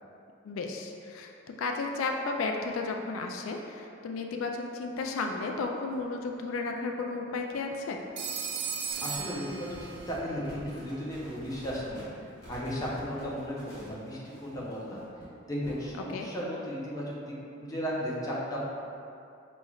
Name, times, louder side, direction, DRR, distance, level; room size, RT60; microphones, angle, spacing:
voice 1, 0.4-1.3 1.6-8.0 16.1-16.3, left 3 dB, 90° left, 3 dB, 0.3 m, -33 dB
sound 1, 5.9-7.1 7.4-9.6 10.0-10.7 11.0-11.9 12.1-12.3 12.8-16.1, equal, 75° right, 1.4 m, -53 dB
Telephone, 8.2-10.2, right 7 dB, 60° right, 0.4 m, -36 dB
sound 2, 8.9-15.0, equal, 50° left, 1.3 m, -49 dB
voice 2, 9.0-12.1 12.5-15.0 15.5-17.3 17.6-18.7, equal, 20° left, -6 dB, 0.6 m, -35 dB
5.4 x 3.0 x 2.3 m, 2.6 s
head